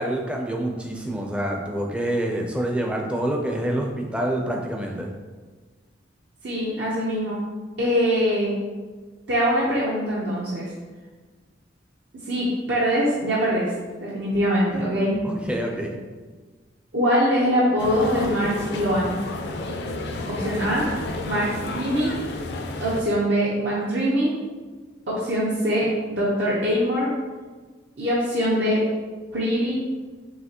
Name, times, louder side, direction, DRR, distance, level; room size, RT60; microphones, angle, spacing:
voice 1, 0.0-5.1 15.2-15.9, right 1 dB, 5° right, 1 dB, 0.4 m, -27 dB
voice 2, 6.4-7.4 7.8-8.6 9.3-10.6 12.3-13.7 14.0-15.2 16.9-19.2 20.3-20.9 21.3-21.5 21.7-22.1 22.8-24.3 25.1-27.1 28.0-28.8 29.3-29.8, equal, 70° right, -6 dB, 0.7 m, -23 dB
sound 1, 17.8-23.0, left 2 dB, 60° left, 0.4 m, -31 dB
5.6 x 2.9 x 2.8 m, 1.4 s
head